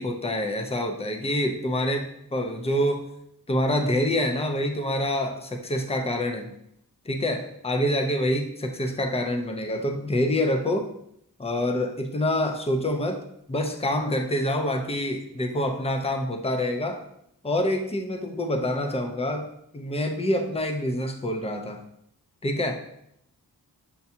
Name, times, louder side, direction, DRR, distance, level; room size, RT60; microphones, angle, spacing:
voice 1, 0.0-3.1 3.5-6.5 7.1-10.9 11.4-13.2 13.5-17.0 17.4-19.5 19.7-21.8 22.4-22.8, left 1 dB, 15° left, 4 dB, 0.5 m, -26 dB
6.8 x 2.3 x 2.7 m, 0.75 s
wide cardioid pair, 70°, 39 cm